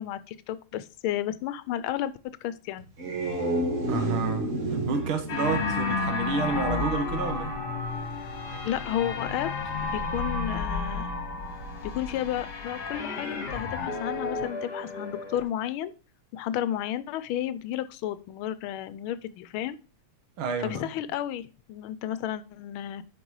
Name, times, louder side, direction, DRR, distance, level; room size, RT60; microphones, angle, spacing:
voice 1, 0.0-2.9 8.6-9.5 9.9-11.1 11.8-15.9 16.3-19.8 20.6-23.0, left 11 dB, 80° left, 1.4 m, -32 dB
sound 1, 2.8-7.0, right 1 dB, 40° right, 1.6 m, -31 dB
voice 2, 3.9-7.5 20.4-20.9, right 4 dB, 75° right, 1.9 m, -30 dB
sound 2, 5.3-15.4, left 4 dB, 55° left, 1.9 m, -32 dB
sound 3, 7.4-12.4, right 4 dB, 60° right, 1.2 m, -46 dB
9.2 x 5.4 x 3.1 m
omnidirectional pair, 2.3 m